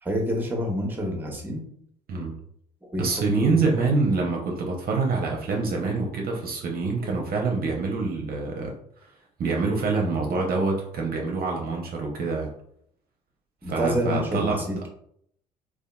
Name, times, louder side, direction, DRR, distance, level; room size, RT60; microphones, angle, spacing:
voice 1, 0.0-1.7 2.9-3.5 13.6-14.9, equal, 10° right, 1 dB, 0.8 m, -28 dB
voice 2, 3.0-8.7 9.0-9.1 9.4-12.5 13.7-14.6, right 4 dB, 45° right, 0 dB, 0.6 m, -26 dB
2.8 x 2.2 x 2.2 m, 0.68 s
hypercardioid pair, 55°, 21 cm